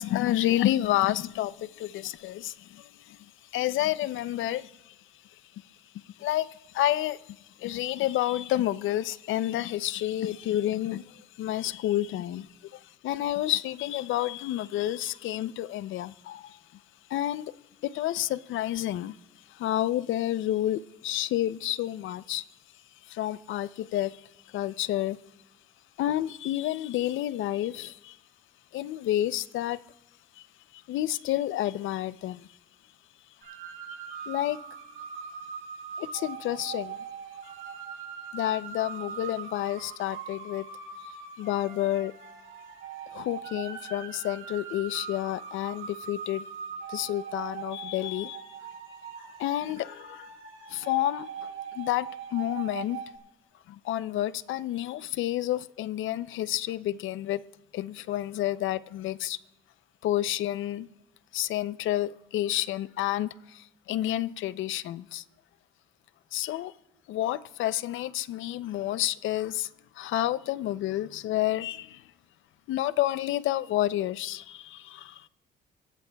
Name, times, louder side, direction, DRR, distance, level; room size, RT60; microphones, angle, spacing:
voice 1, 0.0-3.2 3.5-4.9 6.2-7.2 7.6-12.5 13.0-16.6 17.1-17.5 17.8-19.2 19.5-22.4 23.1-24.2 24.5-25.2 26.0-28.2 28.7-29.8 30.7-32.5 34.3-34.6 36.0-37.0 38.3-40.7 41.4-42.1 43.1-46.5 46.9-48.4 49.2-50.3 50.7-53.0 53.7-57.4 57.7-59.4 60.0-60.9 61.3-65.2 66.3-66.7 67.1-69.7 70.0-72.0 72.7-75.3, left 13 dB, 80° left, 0.5 m, -30 dB
sound 1, 33.4-53.2, right 7 dB, 80° right, 6.4 m, -41 dB
25.5 x 15.5 x 2.3 m
cardioid pair, 90°, 20 cm